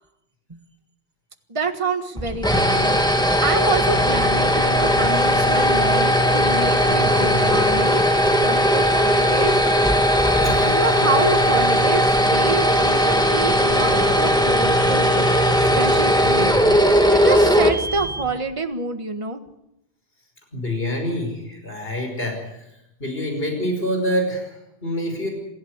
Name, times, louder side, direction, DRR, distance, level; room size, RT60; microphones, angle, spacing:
voice 1, 1.5-3.0 3.4-8.0 8.4-9.6 10.6-15.5 15.8-16.6 17.1-19.4, right 3 dB, 30° right, 6 dB, 1.6 m, -27 dB
sound 1, 2.2-18.4, equal, 5° left, 2.0 m, -18 dB
voice 2, 10.4-10.8 20.5-22.7 23.0-25.3, equal, 70° left, 2 dB, 5.8 m, -26 dB
28.0 x 15.5 x 8.1 m, 0.86 s
omnidirectional pair, 1.0 m